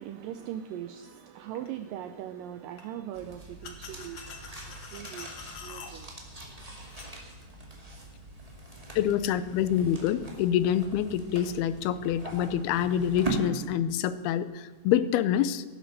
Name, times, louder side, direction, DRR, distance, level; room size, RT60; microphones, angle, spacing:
voice 1, 0.0-6.2 6.7-7.0, right 11 dB, 85° right, 10 dB, 2.0 m, -41 dB
sound 1, 1.6-1.7 2.8-2.9 3.6-5.9 6.8-7.1, left 6 dB, 55° left, 2.2 m, -45 dB
sound 2, 3.1-13.3, right 3 dB, 15° right, 1.5 m, -42 dB
voice 2, 9.0-15.6, left 10 dB, 80° left, 14 dB, 2.6 m, -26 dB
17.0 x 10.5 x 6.6 m, 1.4 s
omnidirectional pair, 4.6 m